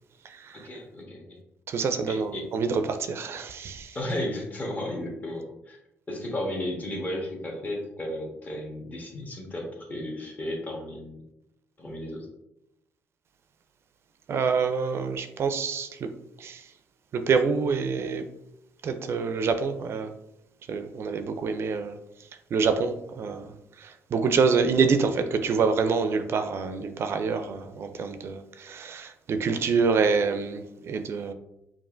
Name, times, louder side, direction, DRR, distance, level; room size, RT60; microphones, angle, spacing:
voice 1, 0.5-1.4 2.1-2.5 3.9-5.8 6.1-11.2 11.8-12.3, left 1 dB, 30° left, 0 dB, 1.1 m, -34 dB
voice 2, 1.7-4.0 14.3-16.1 16.4-16.6 17.1-18.2 18.8-20.1 20.7-22.0 22.5-23.5 23.8-31.3, right 5 dB, 55° right, 8 dB, 0.4 m, -26 dB
5.3 x 2.5 x 2.5 m, 0.84 s
cardioid pair, 85°, 5 cm